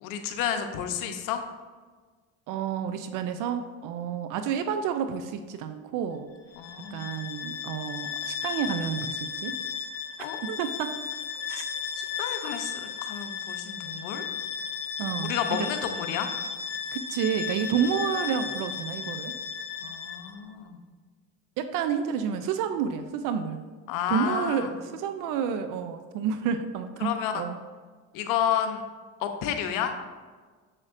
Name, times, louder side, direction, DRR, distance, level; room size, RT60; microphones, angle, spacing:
voice 1, 0.0-1.4 6.6-7.1 10.2-10.4 11.5-11.6 12.0-14.2 15.2-16.3 19.8-20.8 23.9-24.7 27.0-27.4 28.1-28.8 29.2-29.9, left 9 dB, 70° left, 6 dB, 0.9 m, -31 dB
voice 2, 2.5-6.3 6.9-9.5 10.4-11.0 11.5-11.6 15.0-15.7 16.9-19.3 21.6-23.6 24.1-27.6, right 7 dB, 70° right, 9 dB, 0.6 m, -30 dB
Bowed string instrument, 6.5-20.4, left 7 dB, 45° left, 1.0 m, -35 dB
7.3 x 6.5 x 2.6 m, 1.4 s
supercardioid pair, 100°, 33 cm